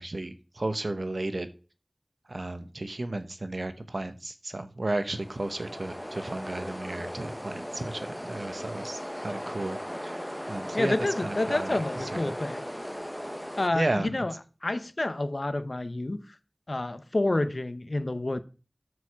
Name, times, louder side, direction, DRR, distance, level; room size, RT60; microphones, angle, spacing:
voice 1, 0.0-1.5 2.3-10.2 10.5-11.8 12.1-12.3 13.7-14.1, right 2 dB, 85° right, 0.9 m, -33 dB
sound 1, 5.0-13.7, equal, 5° left, 0.8 m, -37 dB
voice 2, 10.7-12.6 13.6-14.3 14.6-16.4 16.7-18.4, left 2 dB, 75° left, 0.8 m, -29 dB
12.5 x 4.8 x 4.7 m
wide cardioid pair, 45°, 0 cm